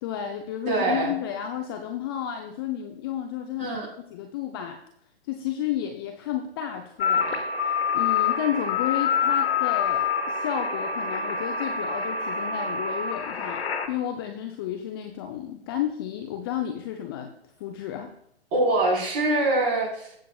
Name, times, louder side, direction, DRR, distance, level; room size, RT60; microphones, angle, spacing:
voice 1, 0.0-3.7 4.1-4.8 5.3-7.5 7.9-17.3 17.6-18.1, left 10 dB, 20° left, 5 dB, 0.5 m, -32 dB
voice 2, 0.7-1.1 3.6-3.9 18.5-20.1, right 2 dB, 25° right, -2 dB, 4.1 m, -24 dB
sound 1, 7.0-13.9, left 6 dB, 65° left, 1.3 m, -26 dB
14.5 x 7.1 x 2.4 m, 0.71 s
figure-of-eight pair, 125°, 33 cm